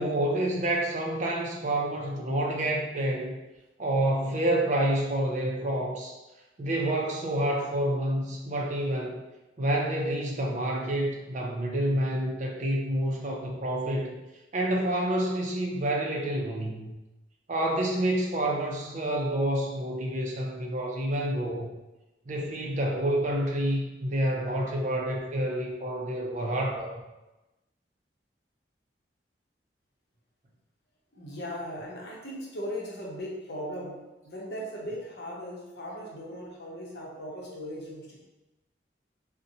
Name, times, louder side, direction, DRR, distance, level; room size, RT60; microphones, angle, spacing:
voice 1, 0.0-3.4 3.8-6.1 6.6-9.2 9.6-14.2 14.5-16.9 17.5-21.7 22.3-26.9, right 1 dB, 40° right, 0 dB, 0.4 m, -28 dB
voice 2, 31.1-38.2, equal, 60° left, -3 dB, 0.8 m, -38 dB
3.9 x 2.1 x 2.7 m, 1.0 s
head